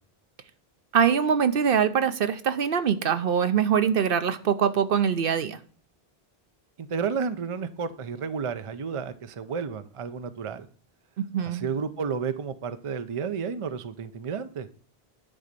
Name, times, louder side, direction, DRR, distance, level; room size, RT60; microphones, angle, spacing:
voice 1, 0.9-5.6 11.2-11.7, right 7 dB, 65° right, 11 dB, 0.8 m, -23 dB
voice 2, 6.8-10.7 11.5-14.7, right 6 dB, 40° right, 11 dB, 0.6 m, -31 dB
9.8 x 3.9 x 6.6 m, 0.43 s
omnidirectional pair, 1.0 m